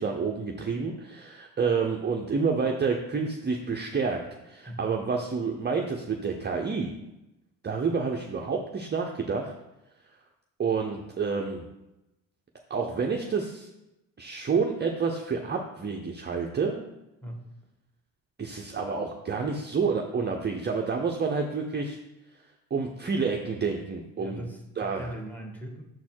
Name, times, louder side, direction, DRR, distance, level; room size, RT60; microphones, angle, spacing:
voice 1, 0.0-6.9 7.6-9.5 10.6-11.6 12.7-13.7 14.2-16.8 18.4-22.0 22.7-24.4 24.8-25.1, right 5 dB, 25° right, 2 dB, 0.7 m, -29 dB
voice 2, 24.2-25.8, right 1 dB, 5° left, 2 dB, 1.5 m, -39 dB
6.4 x 4.2 x 4.5 m, 0.93 s
hypercardioid pair, 55°, 45 cm